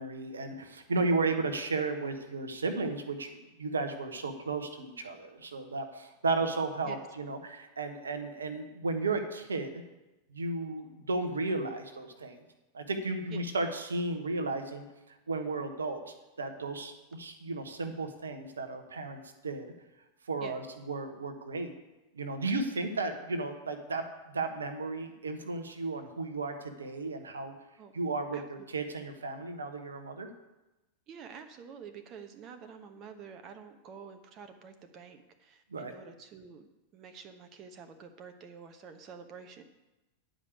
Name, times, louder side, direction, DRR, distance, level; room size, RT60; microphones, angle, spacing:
voice 1, 0.0-9.8 10.3-12.4 12.7-19.7 20.3-21.7 22.1-27.5 27.9-30.3 35.7-35.9, right 3 dB, 70° right, 7 dB, 1.0 m, -34 dB
voice 2, 31.1-39.6, right 6 dB, 35° right, 7 dB, 0.9 m, -48 dB
9.8 x 5.1 x 8.1 m, 1.0 s
figure-of-eight pair, 90°, 0 cm